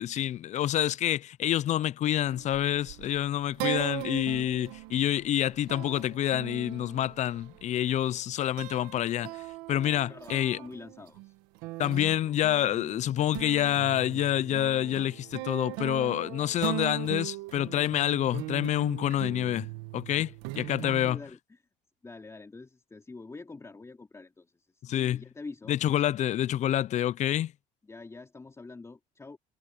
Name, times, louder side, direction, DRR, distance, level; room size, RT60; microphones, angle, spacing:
voice 1, 0.0-9.4 9.7-10.6 11.8-20.3 20.6-21.2 24.8-25.2 25.7-27.5, left 12 dB, 50° left, 0.5 m, -27 dB
sound 1, 2.2-8.2 8.6-21.1, right 19 dB, 90° right, 1.7 m, -39 dB
voice 2, 10.1-11.3 20.2-21.6 22.0-24.7 24.9-25.8 27.8-29.4, left 3 dB, 20° left, 3.1 m, -46 dB
supercardioid pair, 100°, 16 cm